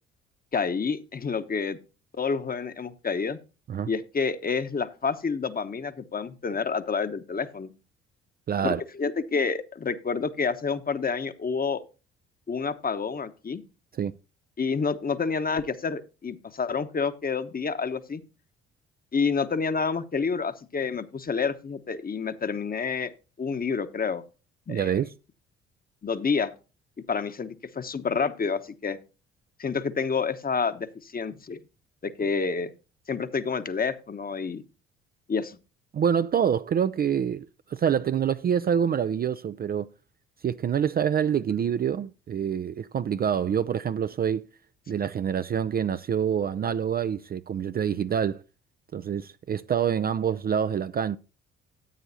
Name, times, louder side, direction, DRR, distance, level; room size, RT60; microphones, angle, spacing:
voice 1, 0.5-1.8 2.1-3.4 3.9-7.7 8.6-11.8 12.5-13.6 14.6-18.2 19.1-23.1 23.4-24.2 24.7-25.0 26.0-26.5 27.1-29.0 29.6-31.6 32.0-32.7 33.1-34.6 35.3-35.6, left 5 dB, 30° left, 1.1 m, -28 dB
voice 2, 8.5-8.8 13.9-14.1 24.7-25.1 35.9-39.9 40.4-44.4 44.9-48.4 48.9-51.2, right 8 dB, 30° right, 0.4 m, -26 dB
14.0 x 8.8 x 2.7 m
hypercardioid pair, 50°, 31 cm